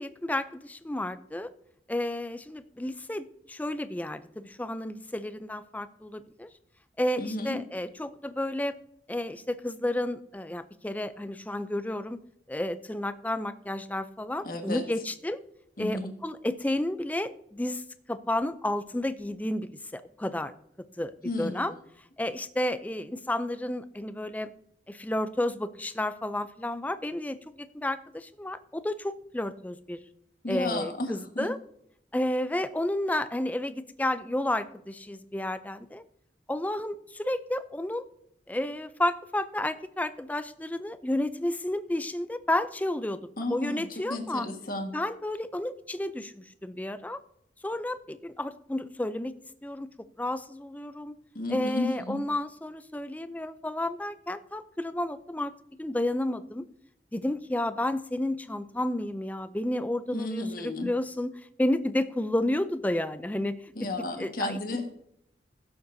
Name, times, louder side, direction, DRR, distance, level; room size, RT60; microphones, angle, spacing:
voice 1, 0.0-1.5 1.9-6.5 7.0-8.7 9.1-12.2 12.5-15.4 15.8-17.8 18.1-20.5 21.0-21.7 22.2-24.5 24.9-30.0 30.5-31.6 32.1-36.0 36.5-38.0 38.5-44.5 44.9-47.2 47.6-49.3 49.6-49.9 50.2-51.1 51.5-55.5 55.8-56.7 57.1-61.3 61.6-63.7 64.2-64.6, left 1 dB, 10° left, 12 dB, 0.4 m, -31 dB
voice 2, 7.2-7.6 14.4-14.8 15.8-16.1 21.2-21.7 30.4-31.5 43.4-44.9 51.3-52.2 60.1-60.9 63.7-64.9, left 2 dB, 50° left, 4 dB, 1.5 m, -33 dB
15.5 x 7.8 x 2.7 m, 0.75 s
head